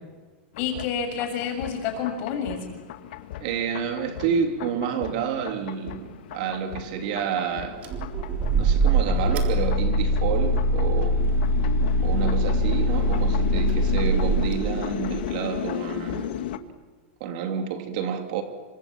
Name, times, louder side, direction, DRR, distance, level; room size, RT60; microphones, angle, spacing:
sound 1, 0.5-16.6, left 11 dB, 60° left, 2.0 m, -35 dB
voice 1, 0.6-2.7, left 7 dB, 35° left, 7.1 m, -29 dB
voice 2, 3.4-7.8 8.5-11.2 12.0-16.3 17.2-18.4, right 7 dB, 45° right, 3.0 m, -29 dB
sound 2, 7.8-15.2, right 1 dB, 25° right, 3.8 m, -23 dB
29.0 x 25.5 x 7.5 m
supercardioid pair, 180°, 6 cm